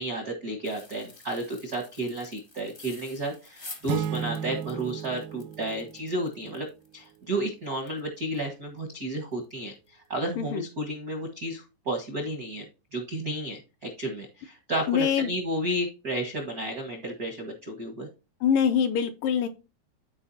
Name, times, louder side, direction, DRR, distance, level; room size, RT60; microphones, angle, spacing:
voice 1, 0.0-6.7 6.9-12.6 12.9-18.1, right 1 dB, 70° right, 3 dB, 0.8 m, -32 dB
sound 1, 0.6-8.4 8.8-8.9 9.3-9.5 9.9-10.1, left 2 dB, 50° left, 0.6 m, -49 dB
sound 2, 3.9-6.7, right 8 dB, 85° right, 1.8 m, -35 dB
voice 2, 14.9-15.3 18.4-19.5, left 8 dB, 80° left, 7 dB, 2.0 m, -24 dB
13.5 x 4.8 x 2.8 m, 0.30 s
omnidirectional pair, 4.4 m